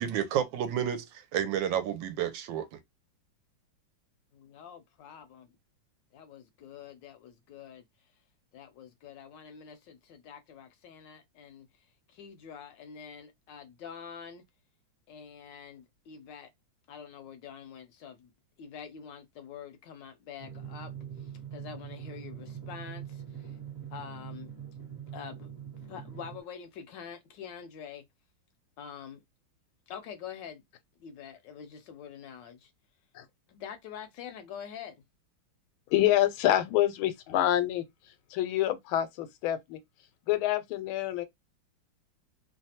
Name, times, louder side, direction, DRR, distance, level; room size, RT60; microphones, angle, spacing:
voice 1, 0.0-2.8, right 9 dB, 75° right, 1.2 m, -31 dB
voice 2, 4.3-5.4 6.1-7.8 8.5-11.7 12.1-14.4 15.1-16.5 16.9-18.3 18.6-20.9 21.2-23.6 23.9-24.5 24.9-25.5 25.9-28.0 28.8-29.2 29.9-30.6 31.0-32.7 33.5-35.0, left 7 dB, 75° left, 1.1 m, -46 dB
Drum, 20.4-26.4, right 9 dB, 45° right, 1.0 m, -43 dB
voice 3, 35.9-37.8 38.3-39.8 40.3-41.2, left 13 dB, 90° left, 1.4 m, -27 dB
3.2 x 2.1 x 2.8 m
omnidirectional pair, 2.2 m